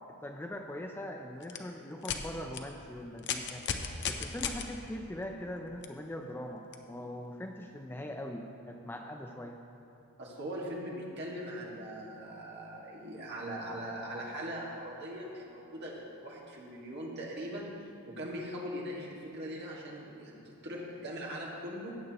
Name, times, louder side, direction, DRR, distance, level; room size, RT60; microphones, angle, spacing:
voice 1, 0.2-3.6 4.1-9.6, left 1 dB, 10° left, 3 dB, 0.3 m, -41 dB
sound 1, 1.4-1.6 2.0-2.2 2.5-2.6 3.2-4.6 5.8-5.9 6.7-6.8, left 7 dB, 50° left, 0.6 m, -34 dB
voice 2, 10.2-17.7 18.1-22.0, equal, 50° right, -4 dB, 1.8 m, -40 dB
16.0 x 8.1 x 3.0 m, 2.8 s
head